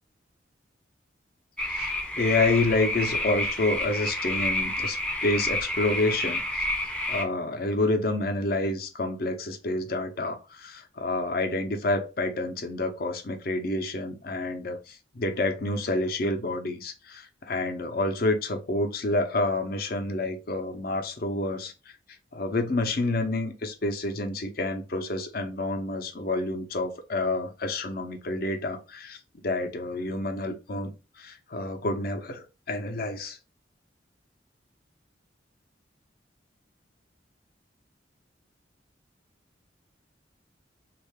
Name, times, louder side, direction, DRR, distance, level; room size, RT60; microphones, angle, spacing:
sound 1, 1.6-7.2, left 1 dB, 5° left, 0.5 m, -29 dB
voice 1, 1.7-6.7 7.1-21.7 22.3-29.2 29.4-30.9 31.2-33.4, left 2 dB, 55° left, 5 dB, 0.7 m, -28 dB
3.2 x 2.5 x 3.5 m, 0.29 s
head